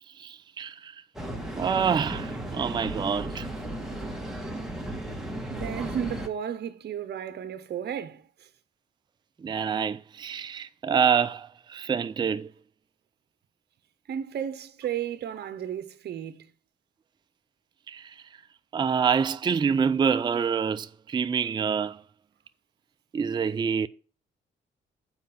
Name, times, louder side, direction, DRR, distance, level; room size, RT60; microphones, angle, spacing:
voice 1, 0.2-1.0 1.6-3.5 9.4-12.5 17.9-18.1 18.7-22.0 23.1-23.9, right 6 dB, 20° right, 0.4 m, -26 dB
sound 1, 1.1-6.3, right 1 dB, ahead, 1.4 m, -35 dB
voice 2, 5.5-8.5 14.1-16.5, right 9 dB, 55° right, 0.8 m, -34 dB
7.3 x 4.7 x 5.8 m
cardioid pair, 90°, 20 cm